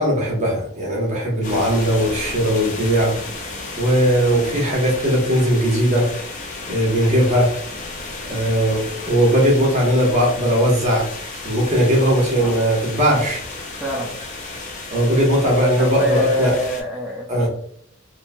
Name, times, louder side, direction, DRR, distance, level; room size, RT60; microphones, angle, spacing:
voice 1, 0.0-3.2 3.8-6.1 6.7-7.5 8.3-11.1 11.4-13.4 14.9-16.5 17.3-17.5, equal, 35° right, -2 dB, 1.0 m, -18 dB
sound 1, 1.4-16.8, left 3 dB, 40° left, 0.6 m, -33 dB
voice 2, 13.8-14.1 15.8-17.5, equal, 10° right, -4 dB, 0.4 m, -26 dB
3.0 x 2.6 x 2.2 m, 0.63 s
head